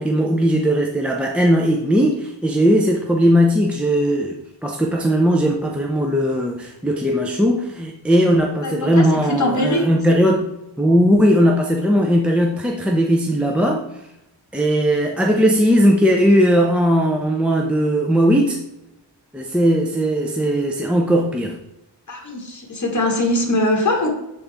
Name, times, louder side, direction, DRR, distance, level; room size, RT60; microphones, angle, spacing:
voice 1, 0.0-10.5 10.8-14.1 14.5-18.6 19.3-21.6, equal, 5° right, 0 dB, 0.4 m, -18 dB
voice 2, 8.6-9.9 22.1-24.1, left 1 dB, 40° left, 1 dB, 1.3 m, -21 dB
7.2 x 3.9 x 3.4 m, 0.88 s
wide cardioid pair, 125°, 44 cm